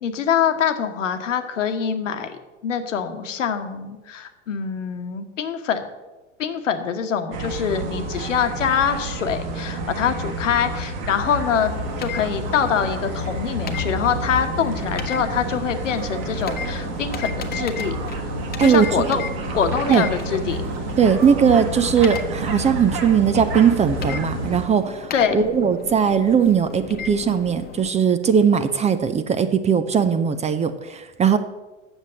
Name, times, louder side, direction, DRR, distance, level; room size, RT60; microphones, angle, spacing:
voice 1, 0.0-2.3 2.6-5.9 6.4-11.7 12.0-18.0 18.6-19.2 19.5-20.6 25.1-25.5, left 7 dB, 80° left, 8 dB, 1.2 m, -24 dB
sound 1, 7.3-24.7, right 1 dB, 55° right, 1.6 m, -29 dB
sound 2, 11.4-27.9, left 6 dB, 25° left, 1.1 m, -36 dB
voice 2, 18.6-19.2 19.9-20.1 21.0-31.4, right 7 dB, 20° right, 11 dB, 0.6 m, -19 dB
8.0 x 6.9 x 7.5 m, 1.2 s
hypercardioid pair, 95°, 37 cm